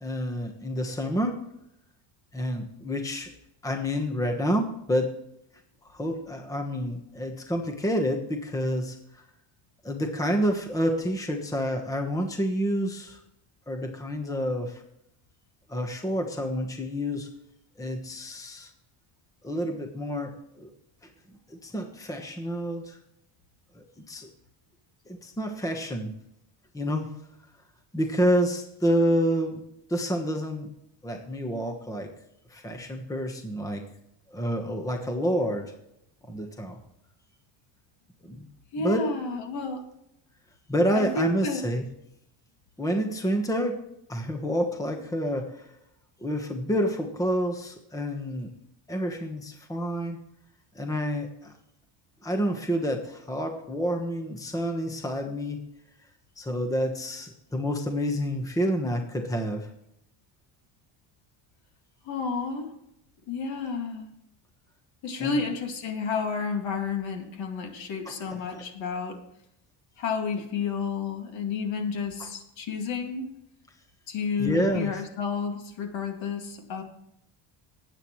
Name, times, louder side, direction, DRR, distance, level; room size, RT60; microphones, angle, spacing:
voice 1, 0.0-1.4 2.3-3.3 3.6-5.1 5.8-9.0 9.8-13.2 13.7-14.8 15.7-17.3 17.8-18.7 19.4-20.7 21.3-23.0 23.7-24.3 25.1-26.1 26.7-27.1 27.9-29.6 29.9-30.7 31.0-32.1 32.5-33.8 34.3-35.7 36.3-36.8 38.2-38.5 38.8-39.0 40.7-41.8 42.8-43.8 44.1-45.7 46.2-48.5 48.9-50.2 50.7-51.5 52.2-55.6 56.4-59.7 65.2-65.4 68.1-68.6 72.2-72.3 74.4-74.9, equal, 5° left, 4 dB, 1.2 m, -28 dB
voice 2, 38.7-39.8 40.9-41.7 62.0-62.7 63.3-64.1 65.0-69.2 70.0-73.3 74.1-76.8, left 5 dB, 65° left, 4 dB, 2.4 m, -31 dB
19.5 x 8.8 x 3.2 m, 0.79 s
cardioid pair, 155°, 49 cm